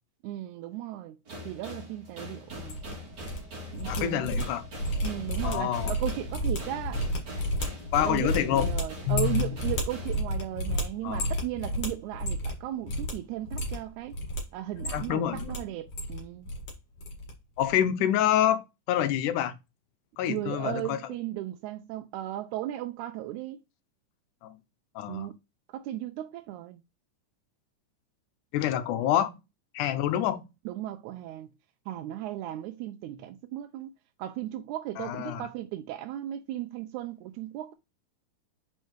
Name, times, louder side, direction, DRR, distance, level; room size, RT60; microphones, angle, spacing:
voice 1, 0.2-1.2 1.5-2.8 3.7-4.3 5.0-7.0 8.0-14.2 14.5-16.5 20.3-23.6 25.1-25.3 25.7-26.8 30.7-31.5 31.9-33.9 34.2-37.7, right 14 dB, 80° right, 1.7 m, -36 dB
sound 1, 1.3-10.2, left 1 dB, 35° right, 2.0 m, -43 dB
sound 2, 2.5-3.4 3.7-12.6 12.8-13.1 13.4-14.4 14.7-15.6 15.8-16.7 17.0-17.3 17.6-17.8, equal, 50° left, 2.5 m, -32 dB
voice 2, 3.8-4.6 5.4-5.9 7.9-9.6 11.0-11.3 14.9-15.6 17.6-18.6 18.9-19.5 20.2-21.0 24.4-24.6 25.0-25.3 28.5-29.3 29.7-30.4 35.0-35.5, left 11 dB, 75° left, 2.2 m, -27 dB
5.5 x 4.6 x 4.5 m
omnidirectional pair, 3.8 m